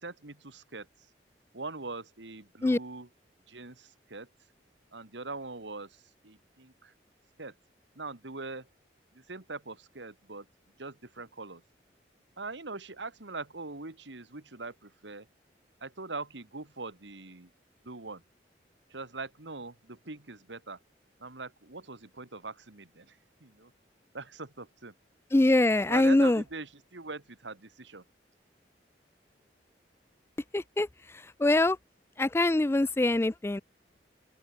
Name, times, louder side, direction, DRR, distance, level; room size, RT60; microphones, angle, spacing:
voice 1, 0.0-0.9 1.5-3.1 3.5-4.3 4.9-6.9 7.4-7.5 8.0-8.7 9.1-10.5 10.8-11.6 12.4-15.3 15.8-17.5 17.8-18.2 18.9-20.8 21.2-23.7 24.1-24.9 25.9-28.0, right 3 dB, 85° right, 2.2 m, -42 dB
voice 2, 25.3-26.4 30.5-30.9 31.4-31.8 32.2-33.6, left 2 dB, 15° left, 0.3 m, -23 dB
open air
head